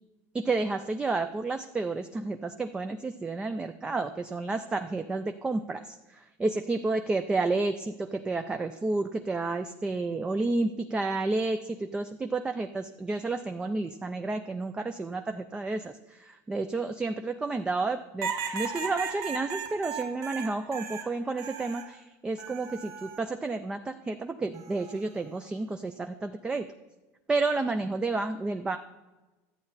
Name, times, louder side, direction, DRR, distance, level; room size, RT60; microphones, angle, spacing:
voice 1, 0.3-26.7 27.3-28.8, right 3 dB, 10° right, 7 dB, 0.3 m, -31 dB
sound 1, 18.2-21.9 22.4-23.2 24.5-25.0, right 5 dB, 45° right, 1.1 m, -36 dB
12.0 x 8.4 x 4.0 m, 1.1 s
supercardioid pair, 150°, 8 cm